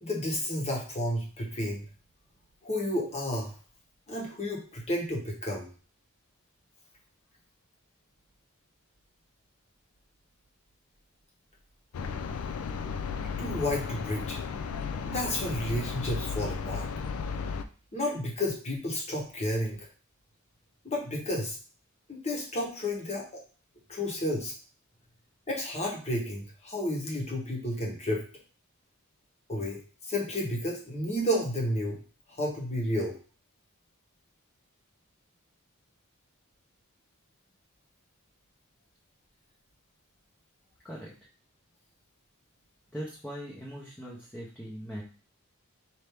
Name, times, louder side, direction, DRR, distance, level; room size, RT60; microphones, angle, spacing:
voice 1, 0.0-1.8 2.6-3.5 4.1-5.7 13.4-14.4 15.1-16.9 17.9-19.9 20.8-21.6 22.1-23.4 23.9-24.5 25.5-28.2 29.5-32.0 32.4-33.1, left 1 dB, 30° left, -1 dB, 1.1 m, -31 dB
sound 1, 11.9-17.6, left 5 dB, 70° left, 0.4 m, -34 dB
voice 2, 42.9-45.0, equal, 5° left, -6 dB, 0.7 m, -40 dB
4.4 x 2.7 x 3.4 m, 0.38 s
head